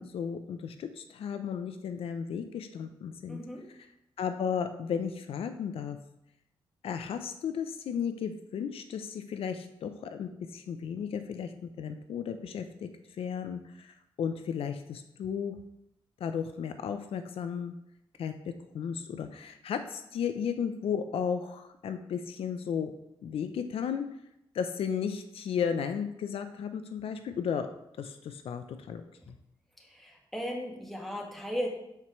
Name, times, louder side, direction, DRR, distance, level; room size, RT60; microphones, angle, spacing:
voice 1, 0.0-3.4 4.2-6.0 6.8-12.9 13.2-15.6 16.2-17.7 18.2-22.9 23.2-24.1 24.5-27.7 28.0-29.4, left 7 dB, 80° left, 8 dB, 0.5 m, -34 dB
voice 2, 3.3-3.8 29.8-31.7, equal, ahead, -1 dB, 1.5 m, -36 dB
11.5 x 4.5 x 3.1 m, 0.83 s
cardioid pair, 105°, 10 cm